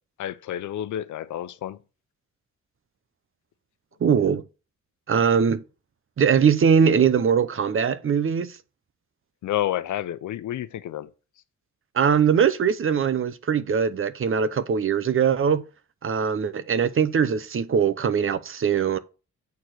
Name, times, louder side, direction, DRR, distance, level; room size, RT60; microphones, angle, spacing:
voice 1, 0.2-1.8 9.4-11.1, left 12 dB, 85° left, 0.7 m, -29 dB
voice 2, 4.0-4.4 5.1-5.6 6.2-8.5 11.9-15.6 16.0-19.0, right 7 dB, 45° right, 0.8 m, -21 dB
8.2 x 4.7 x 4.4 m
cardioid pair, 100°, 29 cm